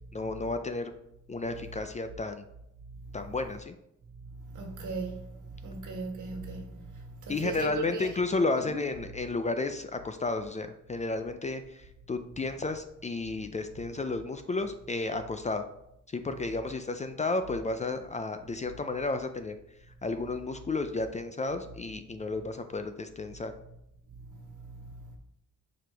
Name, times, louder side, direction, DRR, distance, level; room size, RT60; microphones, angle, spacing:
voice 1, 0.1-0.9 1.3-2.4 3.1-3.8 7.3-15.6 16.1-19.6 20.0-23.5, left 3 dB, 25° left, 0.3 m, -32 dB
voice 2, 4.4-8.1 8.6-8.8 24.3-25.2, right 3 dB, 75° right, 1.4 m, -38 dB
6.0 x 4.8 x 3.4 m
wide cardioid pair, 130°, 31 cm